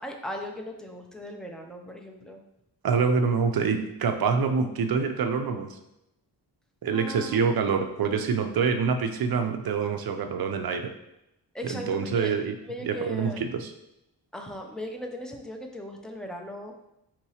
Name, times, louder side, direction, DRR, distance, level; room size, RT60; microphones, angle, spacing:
voice 1, 0.0-2.4 6.9-7.4 11.5-12.4 12.6-13.4 14.3-16.7, left 1 dB, ahead, 2 dB, 0.4 m, -38 dB
voice 2, 2.8-5.7 6.8-10.9 11.6-12.5 12.8-13.7, right 5 dB, 60° right, 6 dB, 0.5 m, -26 dB
4.6 x 3.0 x 2.8 m, 0.87 s
wide cardioid pair, 115°, 42 cm